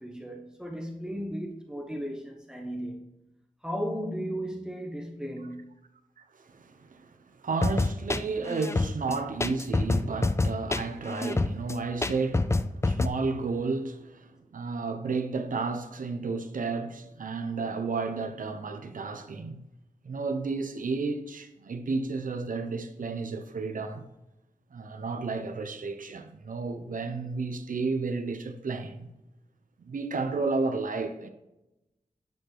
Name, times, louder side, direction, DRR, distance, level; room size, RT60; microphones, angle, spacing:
voice 1, 0.0-3.1 3.6-5.8, equal, 5° right, 1.2 m, -35 dB
voice 2, 6.3-19.6 20.0-24.0 24.7-29.1 29.8-31.3, right 4 dB, 75° right, 0.9 m, -32 dB
sound 1, 7.6-13.1, left 2 dB, 20° left, 0.4 m, -27 dB
9.3 x 5.0 x 3.9 m
wide cardioid pair, 85°, 14 cm